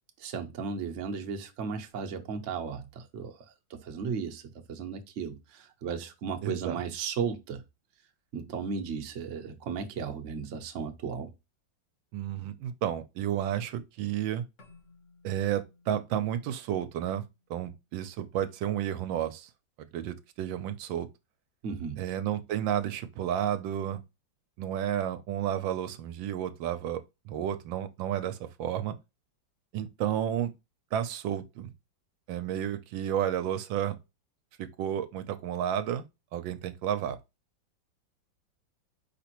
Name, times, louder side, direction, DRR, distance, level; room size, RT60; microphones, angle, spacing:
voice 1, 0.2-3.4 3.7-4.4 4.7-7.6 8.3-11.3 21.6-22.0, right 6 dB, 55° right, 0.9 m, -35 dB
voice 2, 6.4-6.8 12.1-14.4 15.2-17.2 17.5-19.5 19.9-21.1 22.0-24.0 24.6-28.9 29.7-30.5 30.9-31.7 32.3-34.0 34.6-36.0 36.3-37.2, right 10 dB, 80° right, 1.3 m, -31 dB
Keyboard (musical), 14.6-17.8, left 3 dB, 45° left, 1.2 m, -61 dB
5.0 x 3.4 x 2.9 m
omnidirectional pair, 2.1 m